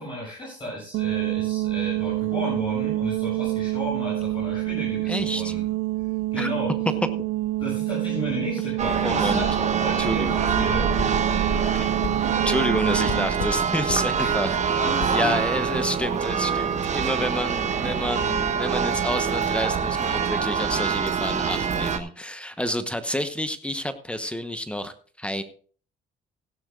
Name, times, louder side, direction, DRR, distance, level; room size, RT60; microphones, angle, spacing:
voice 1, 0.0-5.6 6.3-6.7 7.6-10.9 14.1-14.3 14.8-15.3, equal, 30° left, -5 dB, 7.1 m, -33 dB
sound 1, 0.9-13.3, right 18 dB, 80° right, 0.4 m, -27 dB
voice 2, 5.1-5.5 6.4-6.5 9.0-9.4 10.0-10.4 11.7-11.9 12.4-14.8 15.1-25.4, left 1 dB, 5° left, 10 dB, 1.0 m, -29 dB
Church bell, 8.8-22.0, right 6 dB, 45° right, 1.2 m, -25 dB
sound 2, 11.0-11.1 12.0-12.2 13.1-13.6 13.9-14.0 14.4-14.6 15.0-15.2, left 5 dB, 55° left, 1.6 m, -32 dB
16.5 x 11.5 x 2.4 m, 0.42 s
cardioid pair, 110°, 17 cm